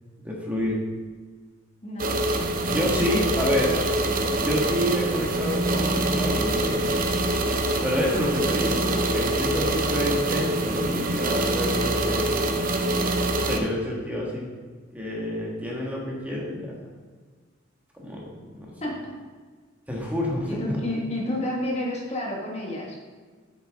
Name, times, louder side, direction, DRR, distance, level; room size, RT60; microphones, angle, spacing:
voice 1, 0.2-0.8 2.7-3.7 4.4-7.0 7.8-12.4 13.3-14.4 14.9-16.7 17.9-18.7 19.9-20.8, left 1 dB, 10° right, -3 dB, 1.6 m, -28 dB
voice 2, 1.8-2.1 3.0-3.2 3.6-3.7 18.8-19.2 20.5-23.0, left 1 dB, 35° left, -2 dB, 1.6 m, -30 dB
sound 1, 2.0-13.6, right 2 dB, 45° right, 0.7 m, -25 dB
8.1 x 7.6 x 3.6 m, 1.5 s
head